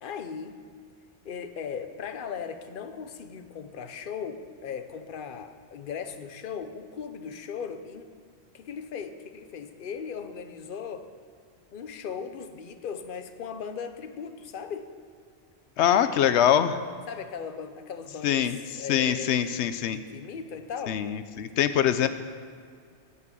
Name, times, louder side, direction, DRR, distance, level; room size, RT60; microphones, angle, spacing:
voice 1, 0.0-0.6 1.2-8.1 8.5-11.1 11.7-14.9 17.1-21.0, left 6 dB, 55° left, 8 dB, 0.9 m, -38 dB
voice 2, 15.8-16.8 18.2-18.6 18.9-20.0 20.9-22.1, left 10 dB, 90° left, 12 dB, 0.9 m, -23 dB
10.5 x 8.3 x 8.1 m, 2.1 s
omnidirectional pair, 1.1 m